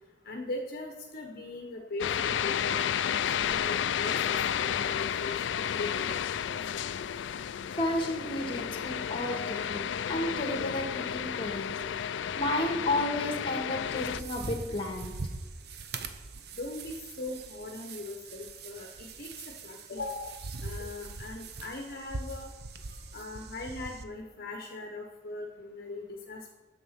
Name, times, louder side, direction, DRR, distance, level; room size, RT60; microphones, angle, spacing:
voice 1, 0.2-2.9 3.4-6.1 6.4-6.6 13.2-13.3 16.5-19.3 19.6-20.3 20.6-22.5 23.1-26.5, left 2 dB, 55° left, 2 dB, 1.0 m, -40 dB
sound 1, 2.0-14.2, left 8 dB, 85° left, 0.4 m, -32 dB
voice 2, 7.7-15.1, left 1 dB, 30° left, 4 dB, 1.8 m, -32 dB
sound 2, 13.8-24.0, right 3 dB, 60° right, 0.8 m, -42 dB
9.9 x 7.3 x 5.8 m, 1.2 s
head